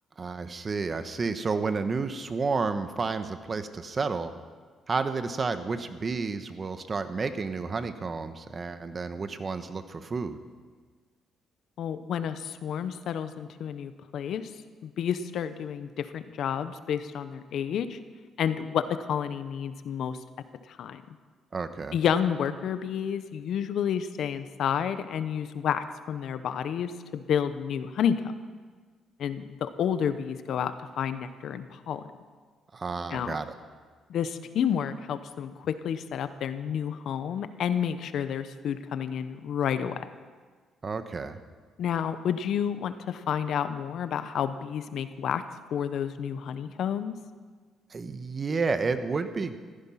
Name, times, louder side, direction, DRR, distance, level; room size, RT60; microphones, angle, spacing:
voice 1, 0.2-4.3 4.9-10.4 21.5-22.0 32.7-33.5 40.8-41.4 47.9-49.6, right 4 dB, 35° right, 10 dB, 1.2 m, -31 dB
voice 2, 11.8-14.5 14.8-18.0 18.4-20.2 20.7-21.0 21.9-28.2 29.2-32.1 33.1-33.4 34.1-40.1 41.8-45.4 45.7-47.2, left 8 dB, 70° left, 11 dB, 0.9 m, -30 dB
15.0 x 15.0 x 5.8 m, 1.5 s
cardioid pair, 90°, 0 cm